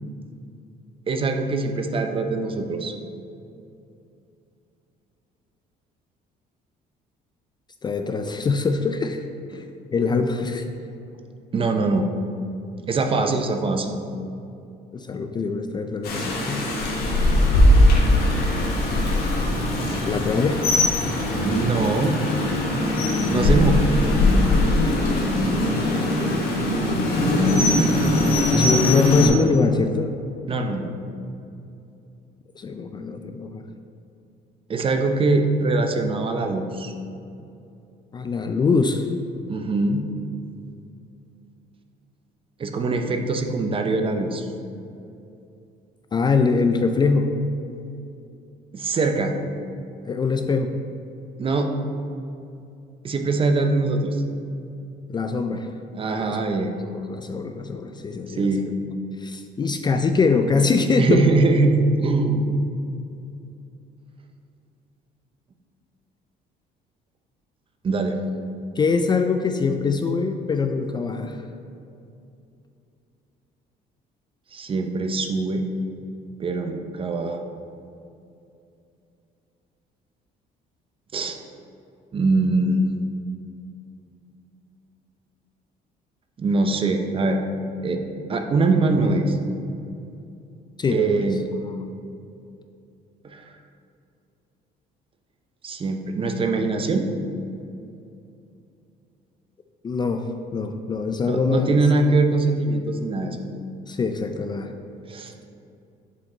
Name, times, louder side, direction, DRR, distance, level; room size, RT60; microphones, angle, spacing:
voice 1, 1.1-2.9 9.5-9.6 11.5-12.0 12.9-14.0 21.4-22.1 23.3-23.8 30.5-30.9 34.7-36.9 39.5-40.0 42.6-44.5 48.7-49.3 51.4-51.7 53.0-54.2 55.9-56.7 58.3-58.6 61.0-62.5 67.8-68.2 74.5-75.6 76.4-77.4 81.1-81.4 82.1-82.8 86.4-87.4 87.8-88.0 88.3-89.4 90.9-91.4 93.2-93.5 95.6-97.1 101.2-103.4 105.1-105.3, right 3 dB, 30° right, 5 dB, 0.6 m, -22 dB
voice 2, 7.8-9.2 9.5-9.6 9.9-10.7 14.9-16.6 20.0-20.7 25.5-26.4 28.5-30.1 32.6-33.6 38.1-39.1 46.1-47.3 50.0-50.7 55.1-55.7 56.2-56.4 56.9-58.7 59.2-61.2 68.8-71.4 90.8-91.3 99.8-101.8 103.9-104.7, left 4 dB, 25° left, 7 dB, 0.3 m, -23 dB
Rain, 16.0-29.3, left 1 dB, 70° left, 1.3 m, -20 dB
7.3 x 4.1 x 3.9 m, 2.6 s
cardioid pair, 110°, 17 cm